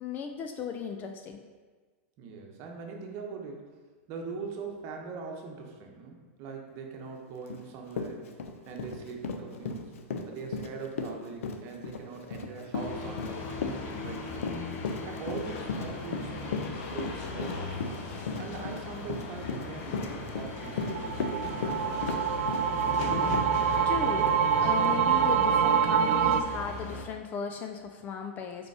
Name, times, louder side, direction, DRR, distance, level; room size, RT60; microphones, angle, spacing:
voice 1, 0.0-1.4 23.9-24.3 24.6-28.7, left 6 dB, 25° left, 5 dB, 0.3 m, -36 dB
voice 2, 2.2-3.7 4.1-8.3 8.7-9.9 10.3-14.5 15.0-17.7 18.4-22.0, right 4 dB, 40° right, 2 dB, 1.0 m, -41 dB
Run, 7.5-7.6 7.9-23.9 24.3-24.4 24.8-25.0, left 4 dB, 80° left, 0.7 m, -36 dB
sound 1, 12.7-27.1, left 3 dB, 45° left, 0.8 m, -38 dB
sound 2, 20.7-26.4, right 7 dB, 65° right, 0.4 m, -26 dB
5.1 x 4.6 x 4.6 m, 1.4 s
supercardioid pair, 150°, 7 cm